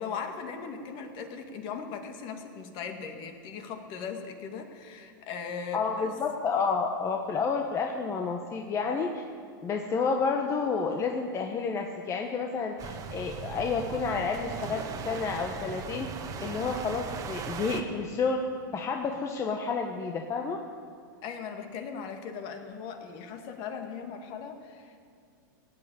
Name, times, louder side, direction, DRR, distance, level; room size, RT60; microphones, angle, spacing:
voice 1, 0.0-6.1 21.2-25.1, left 6 dB, 45° left, 5 dB, 2.0 m, -39 dB
voice 2, 5.7-9.2 9.6-16.1 16.4-18.4 18.7-20.6, left 5 dB, 25° left, 3 dB, 1.1 m, -30 dB
sound 1, 12.8-17.8, right 6 dB, 30° right, 1.4 m, -38 dB
17.5 x 8.7 x 9.0 m, 2.3 s
hypercardioid pair, 120°, 11 cm